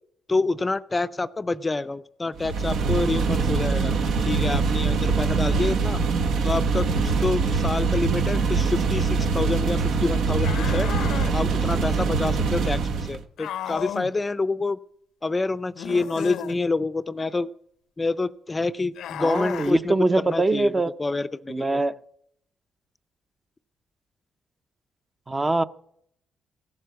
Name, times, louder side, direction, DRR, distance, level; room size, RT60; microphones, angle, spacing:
voice 1, 0.3-6.0 6.4-10.9 11.3-14.8 15.2-17.5 18.0-21.8, left 3 dB, 20° left, 0.5 m, -27 dB
sound 1, 2.4-13.2, right 4 dB, 75° right, 1.0 m, -23 dB
sound 2, 10.4-11.4 13.4-14.1 15.8-16.6 18.9-19.7, left 10 dB, 75° left, 0.6 m, -34 dB
voice 2, 19.2-20.9 21.5-21.9 25.3-25.6, right 2 dB, 20° right, 0.6 m, -23 dB
16.0 x 7.5 x 8.0 m
cardioid pair, 90°, 0 cm